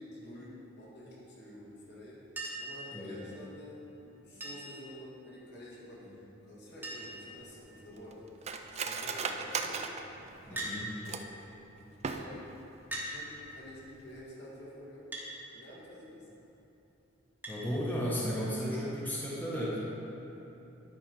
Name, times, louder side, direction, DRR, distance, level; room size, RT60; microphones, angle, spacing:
voice 1, 0.0-2.2 2.6-8.3 8.7-9.8 10.4-11.2 11.8-12.6 12.9-15.1 15.5-16.3, left 1 dB, 60° left, -6 dB, 2.0 m, -49 dB
Chink clink, 2.4-2.8 4.4-4.8 6.2-6.3 6.5-6.6 6.8-7.3 8.0-8.4 10.5-10.8 11.9-12.0 12.9-13.1 15.1-15.3 17.4-17.6 19.0-19.1, right 1 dB, 10° right, 1.2 m, -39 dB
Cutlery silverware, 7.0-11.5 11.9-12.6 12.9-13.0 13.4-13.7 14.1-14.2, right 5 dB, 35° right, 0.4 m, -38 dB
voice 2, 10.5-10.9 17.5-19.8, equal, 10° left, -7 dB, 1.1 m, -34 dB
10.5 x 4.2 x 5.3 m, 3.0 s
head